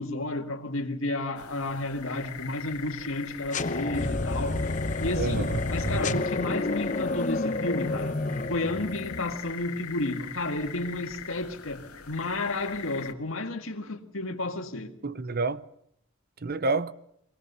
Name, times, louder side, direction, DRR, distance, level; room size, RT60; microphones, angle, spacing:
voice 1, 0.0-4.6 5.0-8.2 8.5-14.9, left 2 dB, 65° left, 2.0 m, -32 dB
sound 1, 1.4-13.1, left 8 dB, 90° left, 2.0 m, -41 dB
sound 2, 3.5-9.5, left 2 dB, 35° left, 0.8 m, -30 dB
voice 2, 5.2-6.2 15.0-15.6 16.4-16.9, right 3 dB, 45° right, 0.7 m, -29 dB
23.5 x 18.5 x 6.8 m
head